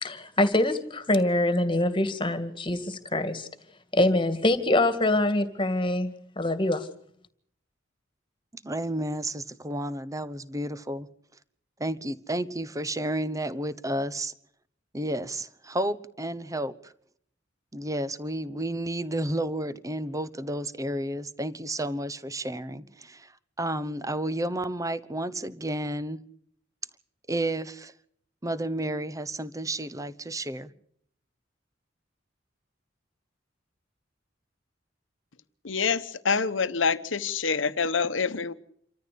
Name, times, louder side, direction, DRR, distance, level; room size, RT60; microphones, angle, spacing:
voice 1, 0.0-3.5 3.9-6.1 6.4-6.9, left 1 dB, 25° left, 2.1 m, -24 dB
voice 2, 8.5-11.1 11.8-14.3 14.9-16.9 17.7-26.2 27.3-27.9 28.4-30.7, right 1 dB, 15° right, 1.0 m, -31 dB
voice 3, 35.6-38.5, left 5 dB, 80° left, 1.1 m, -26 dB
27.5 x 14.0 x 8.5 m
head